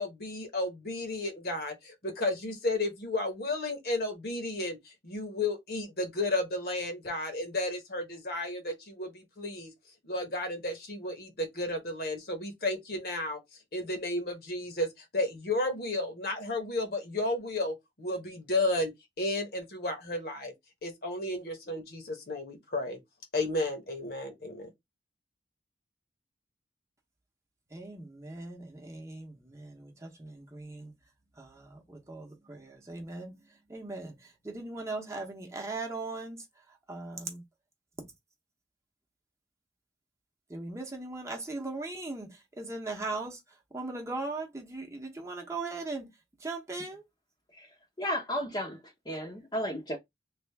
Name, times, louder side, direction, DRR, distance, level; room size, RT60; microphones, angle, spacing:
voice 1, 0.0-9.7 10.0-13.4 13.7-18.9 19.2-20.5 20.8-23.0 23.3-24.7, left 2 dB, 55° left, 1.1 m, -33 dB
voice 2, 27.7-30.9 31.4-36.4 36.9-37.4 40.5-43.4 43.7-46.1 46.4-47.0, right 3 dB, 15° right, 0.8 m, -39 dB
voice 3, 48.0-50.0, equal, 25° left, 0.7 m, -34 dB
3.3 x 2.4 x 3.4 m
head